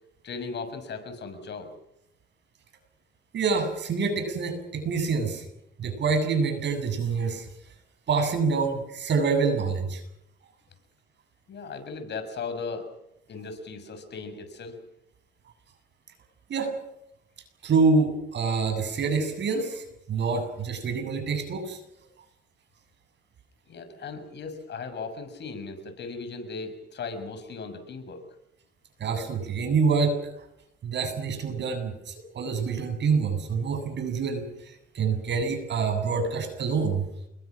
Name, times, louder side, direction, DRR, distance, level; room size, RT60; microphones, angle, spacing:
voice 1, 0.2-1.7 11.5-12.9 13.3-14.8 23.7-28.2 35.1-35.2, left 4 dB, 60° left, 8 dB, 6.5 m, -37 dB
voice 2, 3.3-5.4 5.8-7.5 8.1-10.0 16.5-16.7 17.6-21.8 29.0-30.2 30.8-37.1, right 4 dB, 65° right, 7 dB, 7.7 m, -26 dB
29.0 x 22.5 x 6.3 m, 0.82 s
cardioid pair, 90°, 20 cm